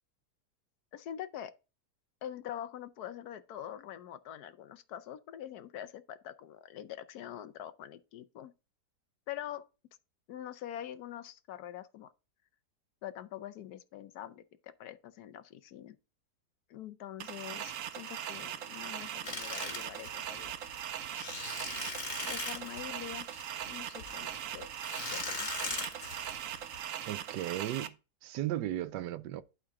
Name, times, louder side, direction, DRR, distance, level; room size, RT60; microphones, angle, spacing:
voice 1, 0.9-1.5 2.2-8.5 9.3-9.6 10.3-12.1 13.0-16.0 16.7-20.6 22.2-23.3 23.6-24.7 25.1-25.8, left 11 dB, 70° left, 1.2 m, -44 dB
sound 1, 17.2-27.9, right 10 dB, 65° right, 0.9 m, -40 dB
sound 2, 19.2-26.8, left 3 dB, 40° left, 2.1 m, -40 dB
voice 2, 27.1-27.9 28.2-29.4, right 13 dB, 80° right, 1.2 m, -35 dB
11.5 x 3.9 x 3.5 m
omnidirectional pair, 1.8 m